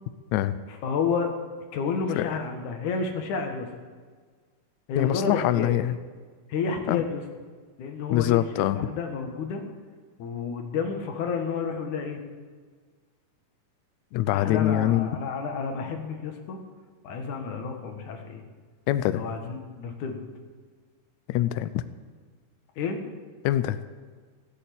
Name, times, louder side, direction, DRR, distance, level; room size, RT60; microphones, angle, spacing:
voice 1, 0.7-1.3 1.7-3.7 4.9-5.7 6.5-7.2 7.8-8.4 8.7-9.6 10.2-12.2 14.3-16.6 17.0-18.4 19.1-20.2 22.8-23.0, left 5 dB, 65° left, 4 dB, 2.9 m, -30 dB
voice 2, 4.9-6.0 6.9-7.0 8.1-8.8 14.1-15.1 18.9-19.2 21.3-21.8 23.4-23.8, left 13 dB, 85° left, 13 dB, 1.6 m, -24 dB
16.5 x 8.5 x 8.5 m, 1.5 s
omnidirectional pair, 3.9 m